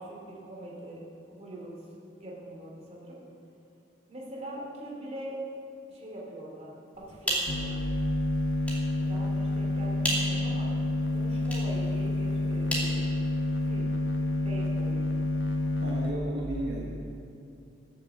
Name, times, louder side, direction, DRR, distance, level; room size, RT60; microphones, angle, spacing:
voice 1, 0.0-1.7 2.2-3.2 4.1-5.4 5.9-7.6 9.0-10.7 11.1-13.1 13.6-13.9 14.4-15.0, right 1 dB, 35° right, -3 dB, 3.0 m, -42 dB
sound 1, 6.9-13.8, right 1 dB, 10° left, 2.6 m, -37 dB
sound 2, 7.5-16.1, left 2 dB, 75° left, 1.1 m, -29 dB
voice 2, 15.8-17.0, right 1 dB, 60° right, -3 dB, 1.4 m, -34 dB
14.0 x 7.4 x 7.3 m, 2.7 s
head